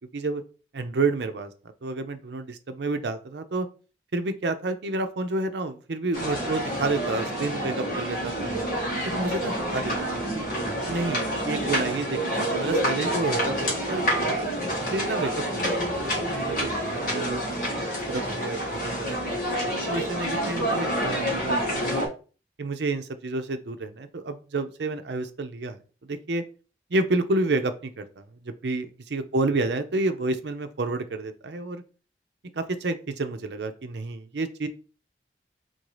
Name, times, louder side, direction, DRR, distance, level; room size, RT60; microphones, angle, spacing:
voice 1, 0.7-1.5 1.8-3.7 4.1-8.5 9.0-10.4 10.9-14.5 14.9-17.4 18.1-19.3 19.9-22.0 22.6-25.8 26.1-26.4 26.9-31.8 32.5-34.7, right 2 dB, 80° right, 9 dB, 0.6 m, -30 dB
sound 1, 6.1-22.1, equal, 50° left, 1.7 m, -28 dB
3.8 x 2.7 x 4.7 m, 0.36 s
head